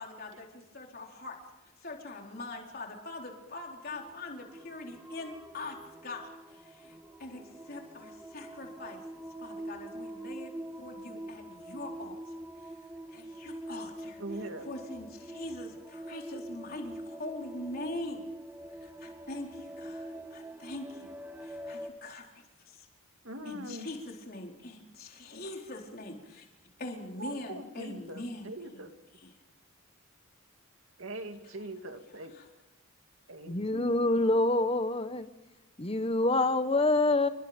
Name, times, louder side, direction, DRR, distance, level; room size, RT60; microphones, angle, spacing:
voice 1, 0.0-1.4 1.8-5.8 6.0-18.2 18.7-21.1 21.4-22.9 23.4-26.5 26.8-28.9 29.2-29.3 31.4-31.5 32.3-32.5, left 2 dB, 45° left, 4.2 m, -43 dB
sound 1, 3.9-21.9, right 1 dB, 10° right, 1.5 m, -44 dB
voice 2, 14.2-14.7 23.2-23.9 27.2-28.9 31.0-32.3 33.3-34.2, right 1 dB, 65° right, 2.4 m, -42 dB
voice 3, 33.5-35.3 35.8-37.3, left 2 dB, 25° left, 1.1 m, -26 dB
29.5 x 22.0 x 5.2 m
head